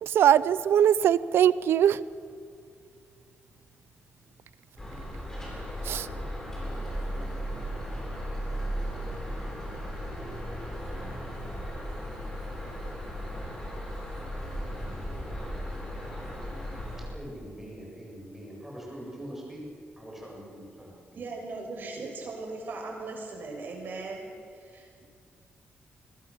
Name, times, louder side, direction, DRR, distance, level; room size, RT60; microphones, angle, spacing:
voice 1, 0.0-2.0 5.8-6.1, right 10 dB, 85° right, 18 dB, 0.6 m, -21 dB
sound 1, 4.8-17.1, equal, 10° left, 7.4 m, -36 dB
voice 2, 17.1-19.6 20.0-20.9, equal, 5° right, -3 dB, 7.9 m, -43 dB
voice 3, 21.1-25.0, right 3 dB, 55° right, 1 dB, 6.8 m, -39 dB
29.0 x 22.5 x 7.4 m, 2.2 s
wide cardioid pair, 155°, 4 cm